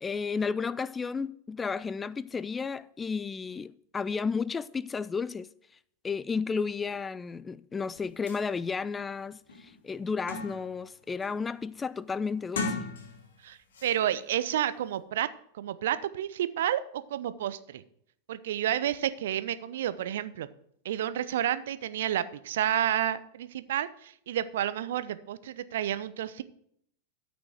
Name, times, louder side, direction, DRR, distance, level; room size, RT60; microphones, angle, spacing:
voice 1, 0.0-5.5 6.0-12.9, left 5 dB, 15° left, 0.4 m, -33 dB
sound 1, 8.0-8.1 8.3-8.4 9.0-9.1 9.5-10.8 11.2-11.6 12.4-13.4 13.7-14.0, left 3 dB, 60° left, 2.4 m, -37 dB
voice 2, 13.4-17.8 18.3-20.5 20.8-26.4, right 11 dB, 60° right, 0.6 m, -30 dB
13.0 x 6.2 x 4.7 m
figure-of-eight pair, 90°, 0 cm